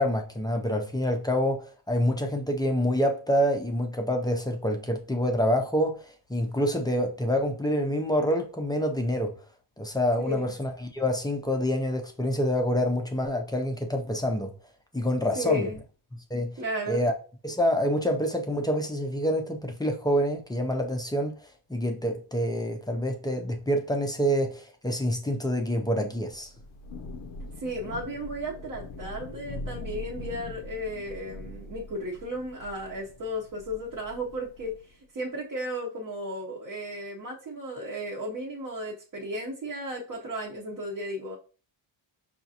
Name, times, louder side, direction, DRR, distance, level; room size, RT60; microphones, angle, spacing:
voice 1, 0.0-9.3 9.8-14.5 14.9-15.7 16.3-16.6 16.9-17.1 17.4-21.4 21.7-26.5, equal, 10° left, 0.4 m, -27 dB
voice 2, 10.2-10.5 15.3-15.8 16.6-17.0 27.6-41.4, equal, 40° right, 0.7 m, -34 dB
Thunder / Rain, 26.3-34.9, left 2 dB, 75° left, 0.6 m, -42 dB
5.8 x 2.4 x 2.7 m
wide cardioid pair, 170°, 49 cm